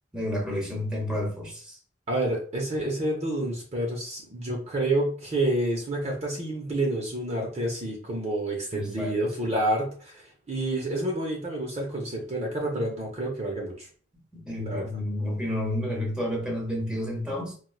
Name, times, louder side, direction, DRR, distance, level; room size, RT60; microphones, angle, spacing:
voice 1, 0.1-1.8 8.7-9.2 14.3-17.5, left 1 dB, 5° right, -2 dB, 0.9 m, -30 dB
voice 2, 2.1-13.9 14.6-14.9, right 1 dB, 35° right, -2 dB, 0.7 m, -29 dB
4.4 x 2.2 x 2.3 m, 0.42 s
head